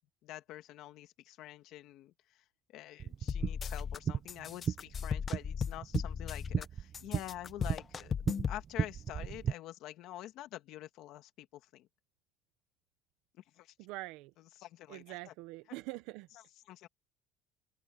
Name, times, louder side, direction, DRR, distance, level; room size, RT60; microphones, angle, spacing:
voice 1, 0.2-2.4 2.7-8.1 8.5-11.9 13.4-13.7 14.6-15.2 16.7-16.9, left 14 dB, 50° left, 1.8 m, -47 dB
sound 1, 3.0-9.5, right 8 dB, 25° right, 0.4 m, -37 dB
sound 2, 3.3-4.0 4.3-6.6 6.9-8.6, left 7 dB, 25° left, 0.6 m, -36 dB
voice 2, 13.8-14.3 14.9-16.3, right 20 dB, 70° right, 0.6 m, -44 dB
open air
cardioid pair, 175°, 0 cm